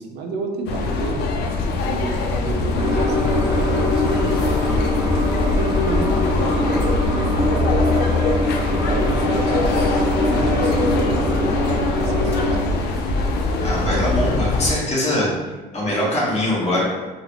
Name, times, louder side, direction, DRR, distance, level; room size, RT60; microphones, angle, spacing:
voice 1, 0.0-1.3 1.8-5.0 5.5-6.7 7.5-8.3 8.7-12.6, right 3 dB, 80° right, 3 dB, 0.5 m, -31 dB
sound 1, 0.7-14.7, left 2 dB, 80° left, 0.4 m, -22 dB
sound 2, 2.8-12.5, left 1 dB, 25° right, 0.9 m, -24 dB
voice 2, 13.6-15.3 15.7-16.8, left 1 dB, 40° left, -5 dB, 1.2 m, -22 dB
3.9 x 2.1 x 2.9 m, 1.3 s
cardioid pair, 110°, 17 cm